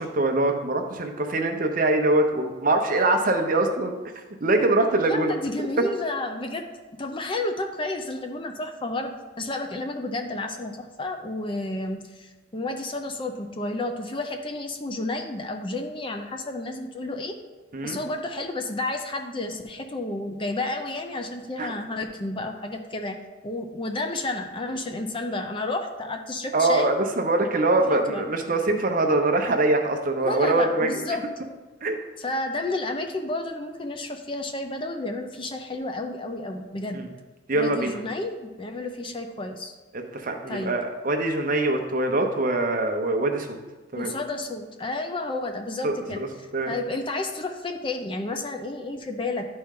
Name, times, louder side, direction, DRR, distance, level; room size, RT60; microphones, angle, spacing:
voice 1, 0.0-3.9 4.4-5.3 5.8-5.9 17.7-18.0 21.6-21.7 26.5-31.0 31.8-32.0 36.9-37.1 37.5-38.0 39.9-43.5 43.9-44.1 45.8-46.3 46.5-46.7, right 2 dB, 45° right, 4 dB, 0.8 m, -23 dB
voice 2, 5.0-6.7 7.0-9.1 9.4-17.3 17.8-23.2 23.4-26.9 27.9-28.3 30.2-31.5 32.2-37.0 37.5-39.7 40.5-40.7 43.9-49.4, left 2 dB, 25° left, 4 dB, 0.5 m, -31 dB
11.5 x 4.3 x 3.7 m, 1.2 s
head